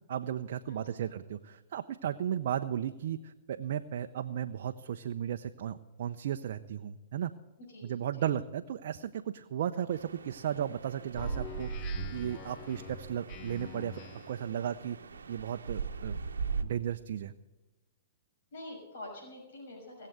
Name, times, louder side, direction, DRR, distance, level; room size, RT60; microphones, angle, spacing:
voice 1, 0.1-7.3 7.8-14.0 14.3-15.0 15.3-16.2 16.6-17.3, right 10 dB, 60° right, 7 dB, 0.6 m, -35 dB
voice 2, 0.7-1.1 7.7-8.3 18.5-20.1, left 1 dB, 65° left, 0 dB, 6.1 m, -47 dB
sound 1, 9.9-16.6, right 5 dB, 80° right, 1.0 m, -39 dB
Speech synthesizer, 11.1-14.5, left 8 dB, 35° left, 0.6 m, -46 dB
19.0 x 7.6 x 8.0 m, 1.1 s
hypercardioid pair, 120°, 0 cm